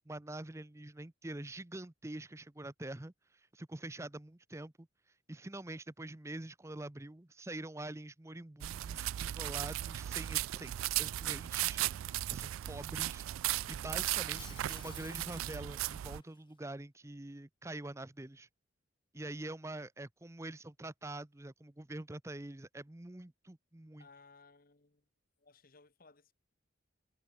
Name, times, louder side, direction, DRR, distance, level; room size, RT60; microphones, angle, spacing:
voice 1, 0.0-3.1 3.5-4.9 5.3-10.7 11.0-13.3 13.7-18.5 19.1-24.1, right 2 dB, 15° right, 0.6 m, -45 dB
sound 1, 8.6-16.2, right 14 dB, 85° right, 0.3 m, -36 dB
Shatter, 14.0-16.4, left 8 dB, 25° left, 1.2 m, -55 dB
voice 2, 24.0-25.0 25.4-26.3, left 4 dB, 45° left, 1.3 m, -61 dB
head